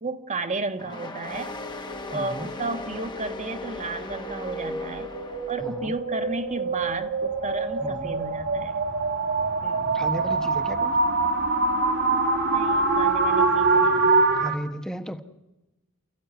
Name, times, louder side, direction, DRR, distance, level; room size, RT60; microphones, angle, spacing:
voice 1, 0.0-1.5 2.1-5.1 5.5-8.8 9.6-9.9 12.5-14.2, right 3 dB, 35° right, 8 dB, 1.4 m, -33 dB
sound 1, 0.8-5.9, left 2 dB, 20° left, 1.5 m, -38 dB
sound 2, 1.3-14.5, right 3 dB, 55° right, 2.4 m, -25 dB
voice 2, 2.1-2.5 5.6-5.9 7.8-8.1 9.9-11.0 14.3-15.2, equal, 5° left, 8 dB, 1.1 m, -34 dB
29.0 x 15.0 x 9.5 m, 1.0 s
head